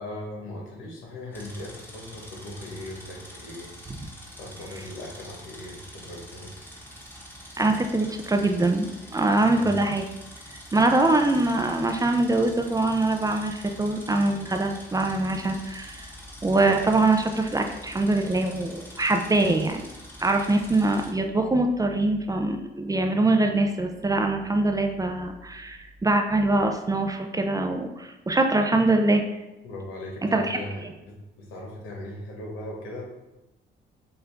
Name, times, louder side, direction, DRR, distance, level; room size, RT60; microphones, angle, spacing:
voice 1, 0.0-3.7 4.4-6.5 9.3-9.7 29.6-30.8 31.4-33.0, left 1 dB, 90° left, -2 dB, 1.3 m, -38 dB
sound 1, 1.3-21.1, equal, 10° left, 1.1 m, -45 dB
voice 2, 7.6-10.0 10.7-16.1 16.4-19.9 20.2-29.2 30.3-30.6, right 2 dB, 15° right, 4 dB, 0.5 m, -23 dB
5.8 x 2.6 x 3.4 m, 1.0 s
cardioid pair, 90°, 20 cm